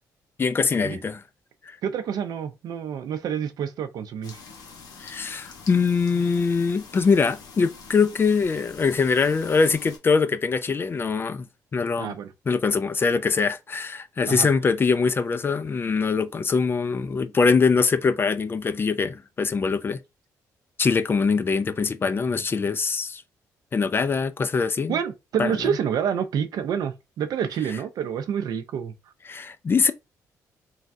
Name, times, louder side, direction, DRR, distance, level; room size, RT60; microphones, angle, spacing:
voice 1, 0.4-1.2 1.7-1.8 5.0-11.5 11.7-12.1 12.5-20.0 20.8-23.2 23.7-25.0 25.4-25.5 29.3-29.9, left 5 dB, 35° left, 0.4 m, -23 dB
voice 2, 1.8-4.4 12.0-12.3 14.3-14.5 24.9-28.9, right 8 dB, 70° right, 0.5 m, -28 dB
sound 1, 4.2-10.0, left 5 dB, 70° left, 0.9 m, -45 dB
3.2 x 2.3 x 2.6 m
cardioid pair, 80°, 7 cm